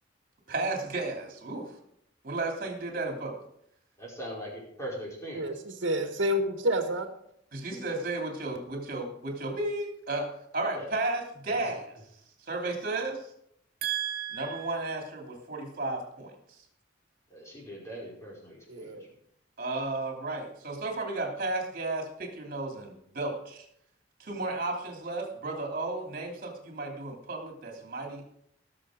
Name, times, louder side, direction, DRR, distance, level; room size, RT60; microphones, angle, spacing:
voice 1, 0.5-1.7 2.2-3.4 7.5-12.0 12.4-13.3 13.8-16.3 19.6-23.6 24.2-28.2, right 2 dB, 50° right, 2 dB, 2.9 m, -33 dB
voice 2, 4.0-5.4 10.7-10.9 11.5-11.7 17.3-18.9, equal, 15° left, -4 dB, 4.8 m, -41 dB
voice 3, 5.3-7.1 18.7-19.0, equal, 70° right, 5 dB, 1.5 m, -29 dB
18.5 x 7.0 x 5.0 m, 0.73 s
head